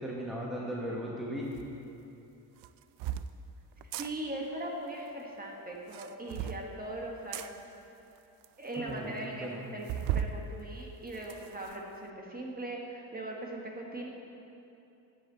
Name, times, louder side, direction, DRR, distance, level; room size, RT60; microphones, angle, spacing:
voice 1, 0.0-1.5 8.8-9.7, equal, ahead, -3 dB, 1.1 m, -37 dB
sound 1, 1.5-1.7 2.6-3.3 3.8-4.1 5.8-6.6 7.3-7.5 8.2-8.3 8.4-8.5 8.9-9.0 9.9-10.3 10.8-11.8, right 10 dB, 85° right, 0.5 m, -35 dB
voice 2, 4.0-7.6 8.6-9.9 10.1-14.1, right 1 dB, 20° right, 0 dB, 1.4 m, -40 dB
12.5 x 8.1 x 4.1 m, 2.8 s
cardioid pair, 115°, 40 cm